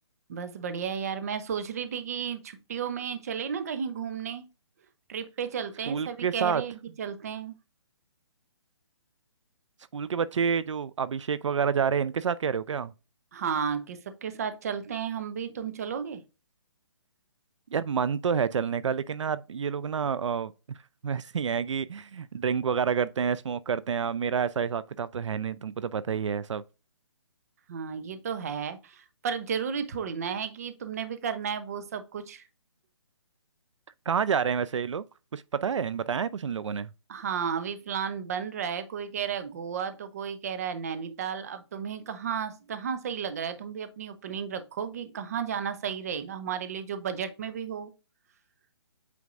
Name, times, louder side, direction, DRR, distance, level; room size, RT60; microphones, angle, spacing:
voice 1, 0.3-4.4 5.1-7.5 13.3-16.2 27.7-32.4 37.1-47.9, right 7 dB, 35° right, 0.8 m, -33 dB
voice 2, 5.9-6.6 9.9-12.9 17.7-20.8 21.0-26.6 34.1-35.0 35.3-36.9, right 6 dB, 85° right, 0.5 m, -28 dB
8.4 x 4.6 x 2.5 m
hypercardioid pair, 170°, 15 cm